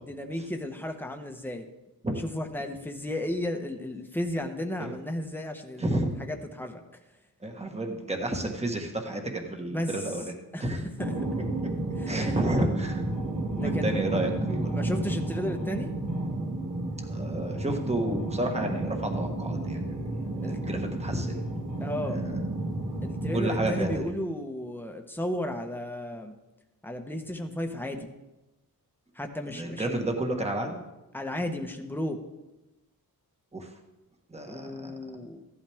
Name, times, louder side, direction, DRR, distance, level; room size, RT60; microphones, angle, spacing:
voice 1, 0.0-1.7 2.2-6.8 9.7-9.9 10.5-10.6 11.0-11.1 12.0-12.2 13.6-14.2 14.7-15.9 20.4-20.6 21.8-22.2 23.0-26.4 26.8-28.1 29.1-30.1 31.1-32.2 34.5-35.4, left 1 dB, 5° left, 4 dB, 1.1 m, -34 dB
voice 2, 5.8-6.1 7.4-10.3 10.6-10.9 12.1-13.0 13.6-14.7 17.1-20.0 20.4-21.4 22.1-22.3 23.3-24.1 29.5-30.8 33.5-33.7 34.3-35.2, right 1 dB, 20° right, 3 dB, 1.5 m, -31 dB
sound 1, 11.0-24.0, right 2 dB, 55° right, 2.1 m, -31 dB
15.5 x 11.5 x 3.5 m, 1.0 s
wide cardioid pair, 140°, 35 cm